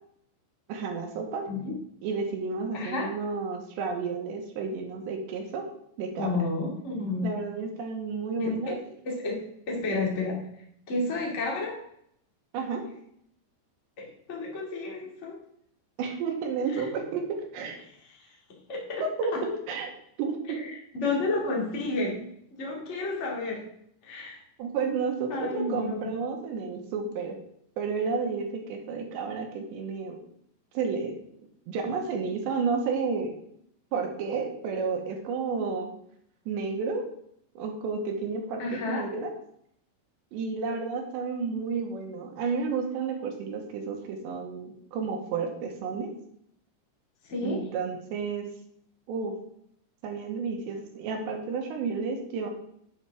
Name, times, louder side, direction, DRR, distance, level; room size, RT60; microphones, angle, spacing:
voice 1, 0.7-1.5 2.0-5.7 6.0-6.4 7.2-8.8 12.5-12.8 16.0-17.8 19.0-19.9 20.2-20.6 24.6-27.4 27.8-30.2 30.7-31.2 31.7-33.3 33.9-35.9 36.5-37.0 37.6-39.3 40.3-46.1 47.4-48.5 49.1-49.4 50.0-52.5, right 5 dB, 75° right, 3 dB, 3.3 m, -31 dB
voice 2, 2.7-3.1 6.2-7.3 8.4-8.8 9.0-9.4 9.7-10.4 10.9-11.8 14.0-15.4 16.7-16.9 18.7-19.0 20.6-22.2 22.5-23.6 24.0-24.4 25.3-26.1 38.6-39.0 47.3-47.6, left 3 dB, 30° left, -2 dB, 1.4 m, -31 dB
10.5 x 8.1 x 3.5 m, 0.71 s
omnidirectional pair, 5.3 m